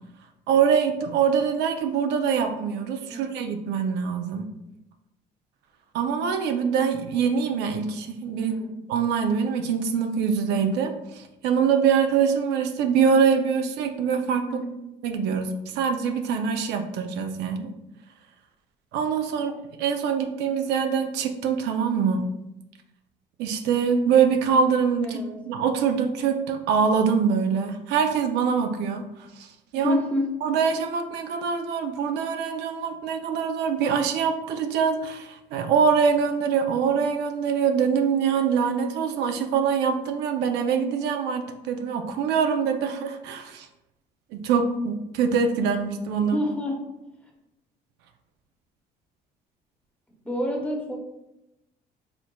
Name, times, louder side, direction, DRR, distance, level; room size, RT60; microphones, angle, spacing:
voice 1, 0.5-4.5 5.9-8.5 8.9-14.6 15.0-17.7 18.9-19.5 19.8-22.3 23.4-29.0 29.4-30.0 30.4-43.7 44.3-46.4, right 6 dB, 85° right, 5 dB, 0.5 m, -24 dB
voice 2, 8.4-8.8 14.5-14.7 25.0-25.4 29.7-30.3 46.3-46.9 50.1-51.0, left 1 dB, 10° left, 0 dB, 0.9 m, -28 dB
4.5 x 3.8 x 2.2 m, 0.91 s
cardioid pair, 110°, 17 cm